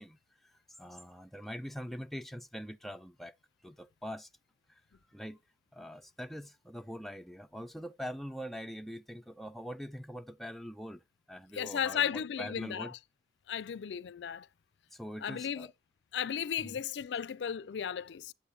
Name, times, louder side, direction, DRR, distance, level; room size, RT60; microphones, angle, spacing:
voice 1, 0.0-3.3 3.6-4.3 4.7-4.8 5.1-5.4 5.7-11.0 11.3-12.9 14.9-15.7 16.6-16.8, equal, ahead, 0.4 m, -43 dB
voice 2, 11.5-12.9 13.5-14.5 15.2-15.7 16.1-18.3, left 8 dB, 85° left, 0.4 m, -35 dB
8.4 x 7.7 x 2.7 m
head